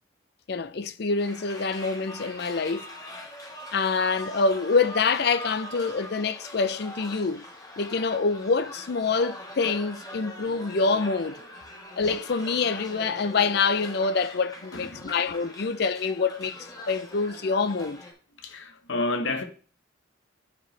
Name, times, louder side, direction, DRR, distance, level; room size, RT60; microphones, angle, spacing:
voice 1, 0.5-2.9 3.7-7.4 7.8-11.4 12.0-16.6 16.9-18.0, left 4 dB, 55° left, 0.5 m, -26 dB
sound 1, 1.1-18.1, left 1 dB, 20° left, 1.4 m, -43 dB
voice 2, 14.7-15.2 18.4-19.4, left 2 dB, 75° left, 1.2 m, -30 dB
10.0 x 4.9 x 3.3 m
head